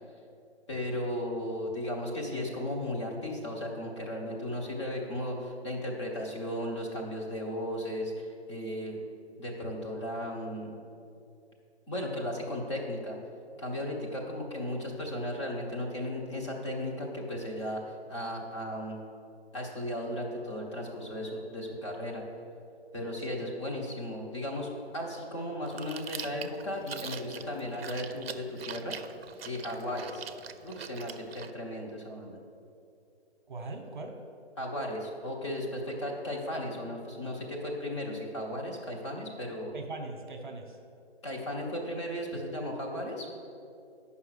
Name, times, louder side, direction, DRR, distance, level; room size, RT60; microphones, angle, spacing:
voice 1, 0.7-9.0 9.4-10.8 11.9-13.2 13.6-19.0 19.5-22.2 22.9-28.9 29.4-30.3 30.6-32.4 34.6-39.7 41.2-43.3, left 1 dB, 25° left, -2 dB, 1.3 m, -35 dB
Chewing mastication, 25.6-31.5, right 7 dB, 60° right, 0.6 m, -43 dB
voice 2, 33.5-34.2 39.7-40.8, right 3 dB, 45° right, 4 dB, 1.1 m, -40 dB
9.2 x 5.6 x 6.5 m, 2.6 s
hypercardioid pair, 165°, 33 cm